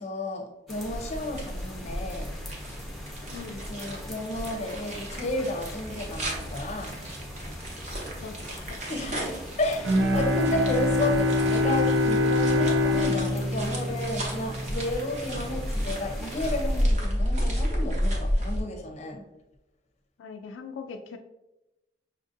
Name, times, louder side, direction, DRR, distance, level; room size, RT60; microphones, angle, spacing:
voice 1, 0.0-2.3 3.6-7.0 8.8-19.3, left 1 dB, 40° left, 3 dB, 0.6 m, -32 dB
sound 1, 0.7-16.8, left 1 dB, ahead, 0.7 m, -41 dB
sound 2, 0.8-18.6, equal, 40° right, 0.9 m, -32 dB
voice 2, 3.3-3.7 8.2-8.4 8.7-8.8 9.2-9.3 20.2-21.2, left 5 dB, 80° left, 5 dB, 0.3 m, -40 dB
Bowed string instrument, 9.8-15.0, left 2 dB, 85° right, 0.5 m, -24 dB
5.7 x 2.5 x 2.5 m, 0.93 s
head